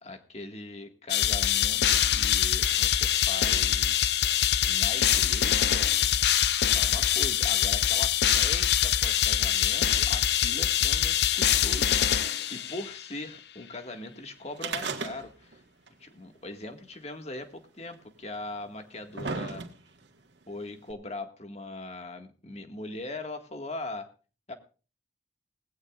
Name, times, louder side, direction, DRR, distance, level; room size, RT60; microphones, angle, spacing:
voice 1, 0.0-4.1 4.7-5.9 6.7-15.6 16.0-19.6 20.5-24.1 24.5-24.6, left 2 dB, 35° left, 6 dB, 1.9 m, -40 dB
sound 1, 1.1-13.0, left 10 dB, 65° left, 0.6 m, -24 dB
sound 2, 14.6-15.6 15.9-16.0 16.9-17.0 17.9-18.0 18.7-20.0 20.9-21.0, right 4 dB, 80° right, 1.8 m, -34 dB
18.5 x 16.5 x 2.5 m, 0.36 s
head